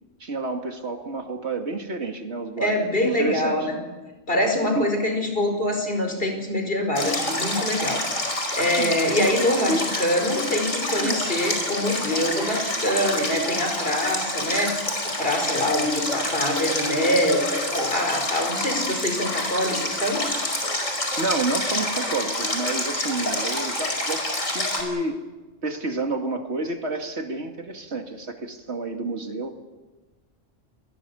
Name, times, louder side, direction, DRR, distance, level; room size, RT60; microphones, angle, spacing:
voice 1, 0.2-3.6 4.7-5.0 8.6-9.0 9.7-9.9 11.0-11.2 21.2-25.2 25.6-29.6, right 3 dB, 60° right, 4 dB, 2.6 m, -29 dB
voice 2, 2.6-3.8 4.3-14.7 15.0-20.2, left 1 dB, 45° left, 4 dB, 5.3 m, -24 dB
Stream, 7.0-24.8, left 1 dB, 85° left, 5.4 m, -27 dB
28.5 x 21.5 x 7.1 m, 1.2 s
omnidirectional pair, 1.3 m